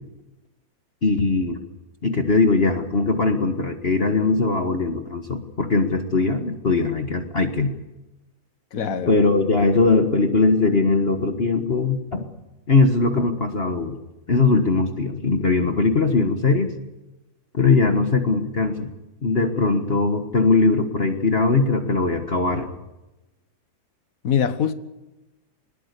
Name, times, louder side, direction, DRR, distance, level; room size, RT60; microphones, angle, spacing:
voice 1, 1.0-1.6 2.0-7.7 9.1-12.2 12.7-14.0 14.3-16.7 17.5-18.9 19.2-22.7, left 3 dB, 40° left, 1.7 m, -20 dB
voice 2, 8.7-9.1 24.2-24.7, left 8 dB, 60° left, 1.7 m, -23 dB
21.5 x 20.5 x 8.3 m
omnidirectional pair, 1.7 m